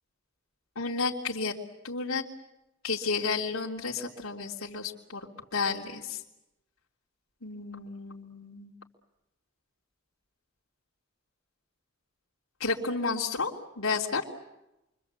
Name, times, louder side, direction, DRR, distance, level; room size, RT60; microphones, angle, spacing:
voice 1, 0.7-1.5 1.8-2.2 2.8-5.3 5.5-6.2 7.4-8.7 12.6-13.5 13.8-14.2, left 4 dB, 85° left, -4 dB, 3.2 m, -31 dB
28.5 x 25.0 x 8.3 m, 0.90 s
head